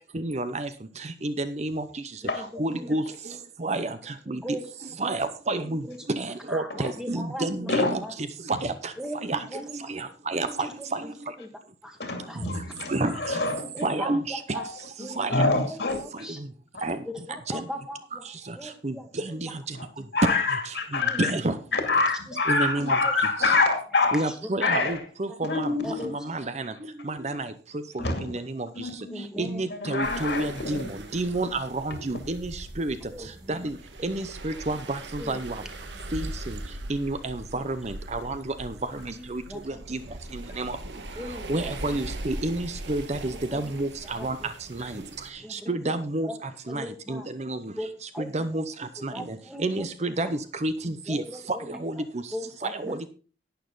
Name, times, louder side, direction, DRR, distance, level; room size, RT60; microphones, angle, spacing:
voice 1, 0.1-2.3 2.6-4.6 5.0-8.0 8.4-8.9 9.2-11.4 12.3-12.5 12.9-13.4 13.8-14.6 15.1-15.4 16.1-16.5 16.8-17.1 17.5-17.7 18.2-20.1 20.9-21.5 22.5-23.0 24.1-35.6 36.1-41.2 41.5-52.3 52.6-53.1, right 2 dB, 35° right, 11 dB, 0.7 m, -31 dB
voice 2, 2.2-3.0 4.3-4.7 5.5-6.0 6.5-7.7 8.0-8.1 9.0-9.6 10.4-10.7 11.0-11.1 11.4-11.5 11.8-12.0 12.3-12.5 13.0-13.1 13.5-14.6 15.0-15.3 15.7-16.4 17.0-18.2 18.5-19.4 21.0-21.2 22.3-22.4 23.0-23.1 24.7-24.8 25.3-25.4 25.8-26.1 29.1-29.6 33.1-33.7 35.2-35.4 35.9-36.1 37.5-37.6 39.1-39.8 41.1-41.7 43.5-43.7 44.2-44.5 45.4-45.9 46.3-46.4 46.7-47.3 47.8-47.9 48.1-48.5 49.1-49.8 51.1-51.8 52.3-53.1, equal, 5° right, 4 dB, 1.6 m, -39 dB
voice 3, 12.0-13.6 14.5-16.0 16.7-16.9 19.7-19.9 20.1-21.3 21.7-24.3 24.6-25.1 25.4-26.1 28.0-28.3 28.7-29.2 29.7-30.9 44.8-44.9, left 3 dB, 60° left, 5 dB, 2.4 m, -26 dB
sound 1, 30.0-45.3, right 1 dB, 70° right, 1.5 m, -40 dB
11.5 x 9.2 x 3.9 m, 0.37 s
head